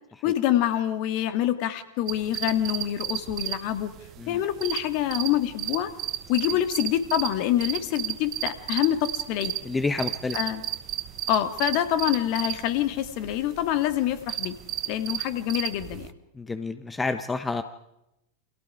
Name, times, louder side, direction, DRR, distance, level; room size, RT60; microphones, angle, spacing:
voice 1, 0.2-3.9 4.3-5.9 6.3-9.5 10.3-10.6 11.3-14.5 14.9-16.1, left 12 dB, 45° left, 10 dB, 2.0 m, -26 dB
sound 1, 2.1-16.1, right 14 dB, 35° right, 1.2 m, -34 dB
voice 2, 9.6-10.4 16.3-17.6, left 3 dB, 10° left, 10 dB, 1.1 m, -29 dB
29.5 x 26.5 x 4.9 m, 0.88 s
figure-of-eight pair, 90°, 0 cm